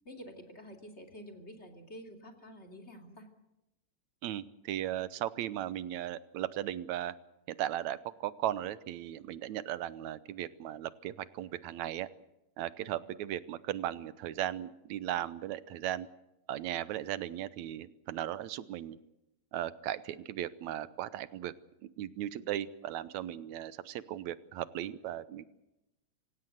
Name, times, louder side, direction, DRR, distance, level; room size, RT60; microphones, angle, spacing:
voice 1, 0.0-3.3 12.8-13.0, equal, 25° left, 4 dB, 2.8 m, -49 dB
voice 2, 4.2-7.1 7.5-12.1 12.6-16.1 16.5-19.0 19.5-21.5 21.8-25.5, right 12 dB, 75° right, 15 dB, 2.2 m, -37 dB
26.0 x 17.0 x 7.9 m, 0.91 s
omnidirectional pair, 3.3 m